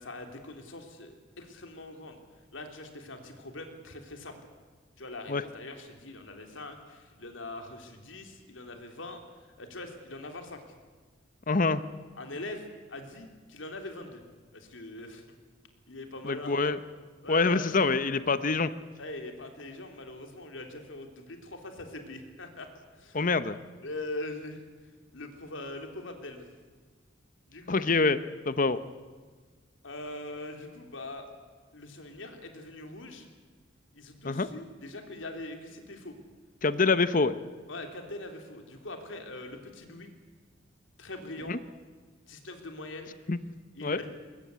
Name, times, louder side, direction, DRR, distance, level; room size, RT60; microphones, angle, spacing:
voice 1, 0.0-2.2 2.5-4.4 5.0-9.2 9.6-10.6 12.2-14.2 14.5-15.2 15.9-16.7 17.2-17.7 19.0-23.2 23.8-24.6 25.1-26.5 27.5-27.8 29.8-31.3 31.7-33.3 33.9-36.2 37.7-40.1 41.0-41.5 42.3-43.1 43.7-44.3, left 2 dB, 80° left, 5 dB, 3.3 m, -42 dB
voice 2, 11.5-11.8 16.2-16.8 17.3-18.7 23.1-23.6 27.7-28.8 34.2-34.5 36.6-37.4 41.5-41.6 43.3-43.4 43.8-44.0, left 3 dB, 45° left, 13 dB, 0.9 m, -25 dB
21.5 x 20.5 x 8.3 m, 1.5 s
head